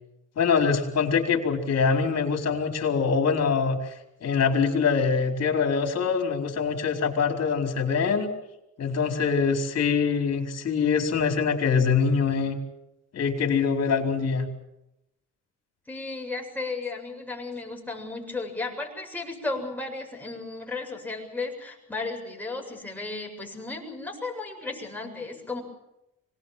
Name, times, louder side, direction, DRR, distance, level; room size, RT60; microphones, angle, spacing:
voice 1, 0.4-3.8 4.2-8.3 8.8-12.6 13.1-14.5, left 5 dB, 55° left, 3 dB, 4.6 m, -24 dB
voice 2, 15.9-25.6, left 3 dB, 5° left, 1 dB, 7.4 m, -34 dB
25.0 x 19.0 x 7.7 m, 0.88 s
cardioid pair, 90°, 30 cm